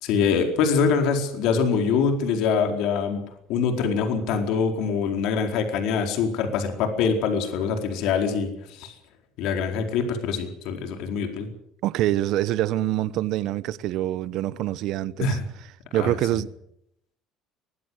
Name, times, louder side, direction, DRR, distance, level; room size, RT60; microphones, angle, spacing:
voice 1, 0.0-3.2 3.5-8.5 8.8-8.9 9.4-11.5 15.2-15.4 15.9-16.1, left 5 dB, 70° left, 4.5 m, -24 dB
voice 2, 11.8-15.4 15.9-16.5, right 13 dB, 60° right, 1.0 m, -25 dB
23.0 x 17.0 x 7.9 m
cardioid pair, 155°, 0 cm